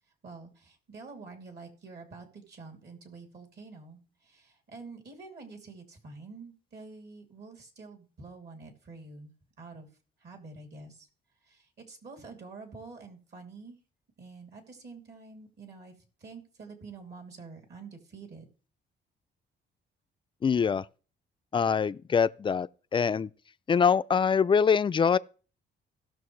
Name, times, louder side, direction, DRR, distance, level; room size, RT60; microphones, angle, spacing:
voice 1, 0.2-9.3 9.6-9.9 10.2-11.1 11.4-13.8 14.2-15.9 16.2-18.4, right 4 dB, 60° right, 2.9 m, -47 dB
voice 2, 20.4-20.8 21.5-22.7 22.9-23.3 23.7-25.2, left 6 dB, 25° left, 0.3 m, -24 dB
17.5 x 6.3 x 3.2 m
cardioid pair, 90°, 20 cm